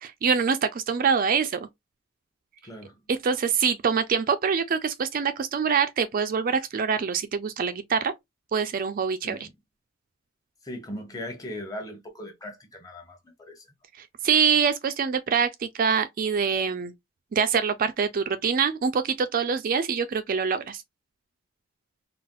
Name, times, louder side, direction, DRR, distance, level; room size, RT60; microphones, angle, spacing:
voice 1, 0.0-1.7 3.1-8.1 8.5-9.4 14.0-16.9 17.3-20.8, right 6 dB, 45° right, 0.4 m, -25 dB
voice 2, 2.6-3.0 9.2-9.5 10.6-13.7, left 1 dB, 20° left, 0.9 m, -39 dB
4.0 x 2.0 x 2.3 m
head